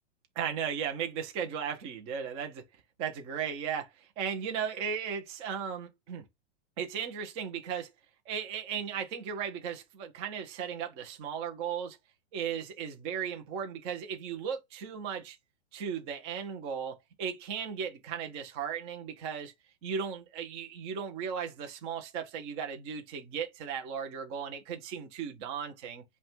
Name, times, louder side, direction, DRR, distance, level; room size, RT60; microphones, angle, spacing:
voice 1, 0.4-2.6 3.0-6.3 6.8-7.9 8.3-12.0 12.3-15.4 15.7-19.5 19.8-26.0, right 7 dB, 15° right, 0.5 m, -36 dB
5.2 x 2.2 x 3.5 m
hypercardioid pair, 160°, 34 cm